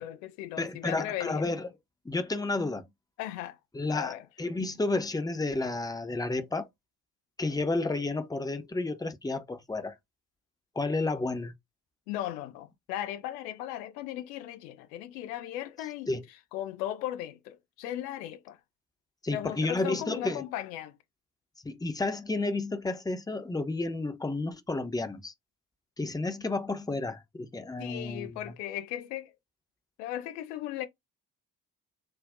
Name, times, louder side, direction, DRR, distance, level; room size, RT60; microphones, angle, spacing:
voice 1, 0.0-1.4 3.2-3.6 3.9-4.2 12.1-16.1 16.5-18.6 19.3-21.0 27.8-29.3 30.0-30.9, left 13 dB, 75° left, 0.7 m, -37 dB
voice 2, 0.6-1.7 2.0-2.8 3.7-6.7 7.4-10.0 10.7-11.5 16.1-16.2 19.2-20.4 21.6-25.3 26.0-28.5, left 2 dB, 10° left, 0.9 m, -31 dB
7.3 x 2.5 x 2.5 m
figure-of-eight pair, 40°, 49 cm